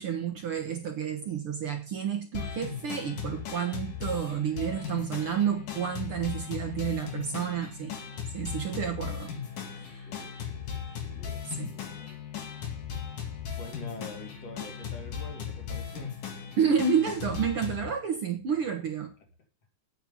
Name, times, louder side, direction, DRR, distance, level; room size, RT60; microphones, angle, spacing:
voice 1, 0.0-7.9 8.3-9.3 9.7-10.1 11.4-11.7 16.6-19.1, right 7 dB, 55° right, 4 dB, 1.8 m, -30 dB
sound 1, 2.3-17.9, left 7 dB, 75° left, 3.7 m, -37 dB
voice 2, 10.0-12.2 13.6-16.1, left 3 dB, 55° left, 3 dB, 3.2 m, -46 dB
10.0 x 9.1 x 5.5 m, 0.34 s
omnidirectional pair, 3.6 m